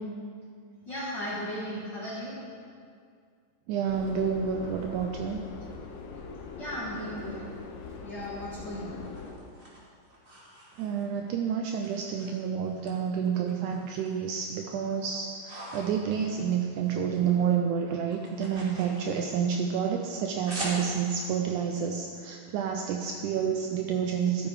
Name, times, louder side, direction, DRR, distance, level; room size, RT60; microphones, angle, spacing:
voice 1, 0.8-2.3 6.5-7.5 8.0-9.0, equal, 45° left, -7 dB, 1.5 m, -36 dB
voice 2, 3.7-5.4 10.8-24.5, right 7 dB, 85° right, 3 dB, 1.8 m, -29 dB
Subway metro underground, 3.9-9.3, left 4 dB, 75° left, 1.5 m, -42 dB
sound 1, 9.0-11.3 11.8-12.9 13.2-14.3 14.6-17.2 17.5-21.3, right 1 dB, 20° right, 1.7 m, -43 dB
12.5 x 7.2 x 4.9 m, 2.2 s
omnidirectional pair, 4.0 m